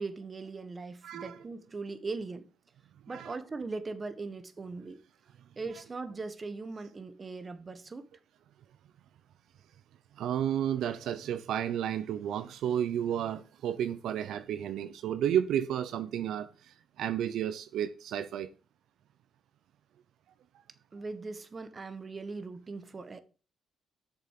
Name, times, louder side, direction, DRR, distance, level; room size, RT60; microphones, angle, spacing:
voice 1, 0.0-2.5 3.1-5.0 5.5-8.1 20.9-23.2, right 3 dB, 30° right, 1.6 m, -40 dB
voice 2, 1.0-1.4 3.1-3.3 10.2-16.5 17.0-18.5, right 10 dB, 75° right, 0.8 m, -32 dB
8.2 x 6.9 x 7.6 m
cardioid pair, 90°, 0 cm